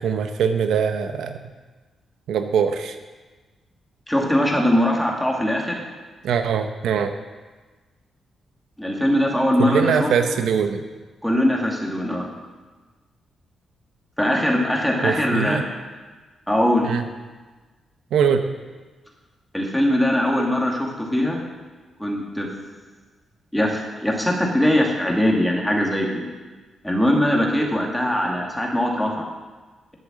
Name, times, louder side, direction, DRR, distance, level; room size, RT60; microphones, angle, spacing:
voice 1, 0.0-1.4 2.3-3.0 6.2-7.1 9.6-10.9 15.0-15.7 16.8-17.0 18.1-18.4, right 7 dB, 85° right, 7 dB, 0.9 m, -22 dB
voice 2, 4.1-5.8 8.8-10.1 11.2-12.3 14.2-15.6 16.5-16.9 19.5-21.4 22.0-22.5 23.5-26.2 26.8-29.3, left 1 dB, 5° left, -1 dB, 2.4 m, -21 dB
11.0 x 8.2 x 7.5 m, 1.3 s
cardioid pair, 115°, 0 cm